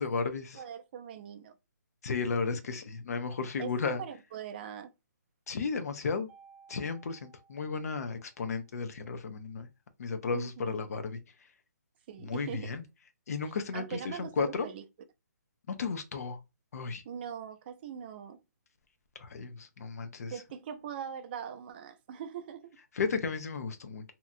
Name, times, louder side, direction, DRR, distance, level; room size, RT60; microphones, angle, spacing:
voice 1, 0.0-0.6 2.0-4.0 5.5-6.3 6.7-9.7 10.0-11.2 12.2-12.8 13.3-14.7 15.7-16.4 16.7-17.0 19.2-20.4 22.9-24.1, left 4 dB, 60° left, 0.6 m, -34 dB
voice 2, 0.6-1.5 3.6-3.7 4.0-4.9 10.3-10.7 12.1-12.7 13.7-14.8 17.0-18.4 20.3-22.8, right 8 dB, 35° right, 0.5 m, -41 dB
Mallet percussion, 6.3-8.5, right 5 dB, 75° right, 0.8 m, -59 dB
2.8 x 2.3 x 2.6 m
hypercardioid pair, 150°, 9 cm